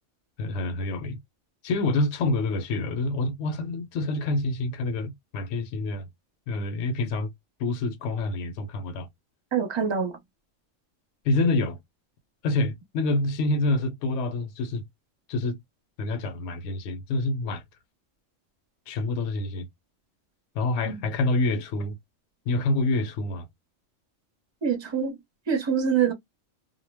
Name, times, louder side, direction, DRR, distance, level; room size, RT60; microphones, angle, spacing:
voice 1, 0.4-1.2 1.6-6.1 6.5-7.3 7.6-9.1 11.2-11.8 12.4-14.8 15.3-15.6 16.0-17.6 18.9-19.7 20.5-22.0 22.5-23.5, left 2 dB, 70° left, 0.9 m, -27 dB
voice 2, 9.5-10.2 20.9-21.0 24.6-25.2 25.5-26.1, right 7 dB, 25° right, 0.6 m, -25 dB
2.2 x 2.1 x 3.2 m
omnidirectional pair, 1.3 m